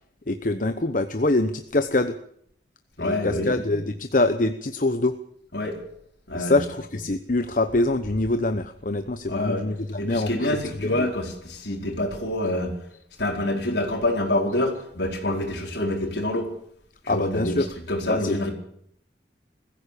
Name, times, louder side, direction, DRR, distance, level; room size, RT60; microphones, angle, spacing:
voice 1, 0.3-2.1 3.0-5.1 6.3-10.5 10.8-11.1 17.1-17.7 18.1-18.5, left 2 dB, 45° left, 9 dB, 0.9 m, -24 dB
voice 2, 3.0-3.5 5.5-5.8 6.3-6.6 9.3-9.6 10.0-12.8 13.2-16.5 17.0-17.6 17.9-18.5, left 1 dB, 65° left, 2 dB, 4.7 m, -26 dB
21.5 x 15.0 x 8.4 m, 0.68 s
head